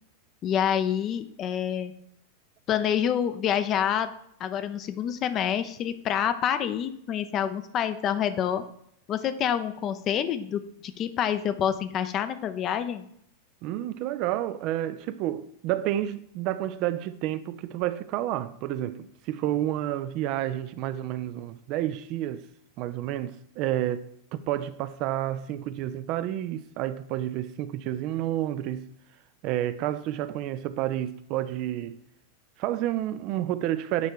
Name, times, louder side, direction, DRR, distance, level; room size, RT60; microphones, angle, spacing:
voice 1, 0.4-1.9 2.7-4.1 4.4-8.6 9.1-13.1, left 9 dB, 30° left, 0.5 m, -27 dB
voice 2, 13.6-22.5 22.8-28.9 29.4-32.0 32.6-34.1, right 13 dB, 40° right, 0.3 m, -30 dB
9.4 x 3.3 x 4.6 m
figure-of-eight pair, 90°, 0 cm